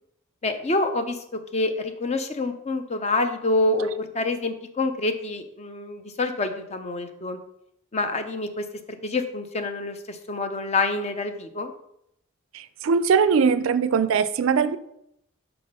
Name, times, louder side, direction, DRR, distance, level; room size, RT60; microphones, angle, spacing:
voice 1, 0.4-1.2 1.5-7.4 7.9-11.7, left 2 dB, 30° left, 8 dB, 0.6 m, -27 dB
voice 2, 12.5-14.8, right 6 dB, 70° right, 14 dB, 0.4 m, -21 dB
5.8 x 3.4 x 5.4 m, 0.76 s
head